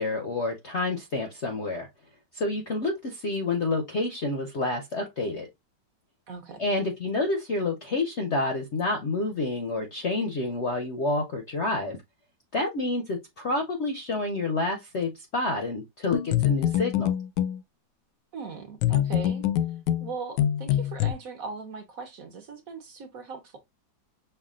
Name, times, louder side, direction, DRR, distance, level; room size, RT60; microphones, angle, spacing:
voice 1, 0.0-1.9 2.3-5.5 6.6-12.0 12.5-17.1, left 2 dB, 55° left, 0.7 m, -28 dB
voice 2, 6.3-6.6 18.3-19.4 20.0-23.6, right 4 dB, 55° right, 1.1 m, -39 dB
sound 1, 16.1-17.6 18.8-21.1, left 11 dB, 80° left, 1.2 m, -25 dB
5.7 x 2.3 x 3.6 m
omnidirectional pair, 2.0 m